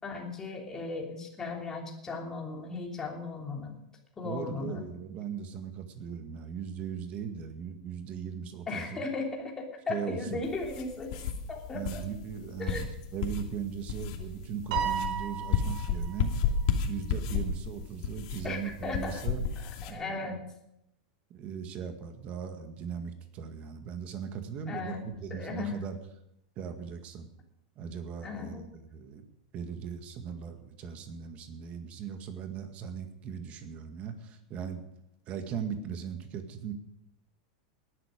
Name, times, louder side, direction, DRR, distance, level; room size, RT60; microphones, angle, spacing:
voice 1, 0.0-3.7 4.2-4.9 8.7-11.2 11.5-12.0 12.6-12.8 18.4-19.2 19.8-20.4 24.7-25.0 25.3-25.8 28.2-28.6, left 3 dB, 15° left, 0 dB, 3.2 m, -36 dB
voice 2, 4.2-9.0 9.9-10.4 11.7-16.3 16.8-19.4 19.9-20.4 21.3-26.0 26.6-27.3 27.8-28.7 28.9-29.2 29.5-34.8 35.3-36.7, right 7 dB, 35° right, 7 dB, 2.0 m, -38 dB
sound 1, 10.4-19.9, left 6 dB, 55° left, 2.7 m, -33 dB
Piano, 14.7-16.2, right 8 dB, 60° right, 4.7 m, -33 dB
18.5 x 11.5 x 5.2 m, 0.83 s
supercardioid pair, 150°, 4 cm